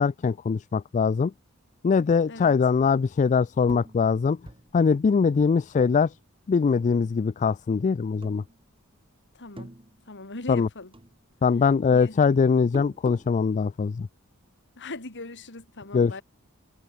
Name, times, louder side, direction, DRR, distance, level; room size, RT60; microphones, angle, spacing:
voice 1, 0.0-1.3 1.8-4.4 4.7-6.1 6.5-8.4 10.5-10.7 11.4-14.1 15.9-16.2, left 5 dB, 35° left, 0.3 m, -22 dB
voice 2, 2.3-2.6 9.3-9.7 10.1-10.9 11.9-12.2 14.8-16.2, left 2 dB, 55° left, 3.2 m, -39 dB
sound 1, 3.7-6.6 6.9-7.7 8.1-9.1 9.3-10.7 10.9-13.4, right 1 dB, 25° right, 2.2 m, -46 dB
head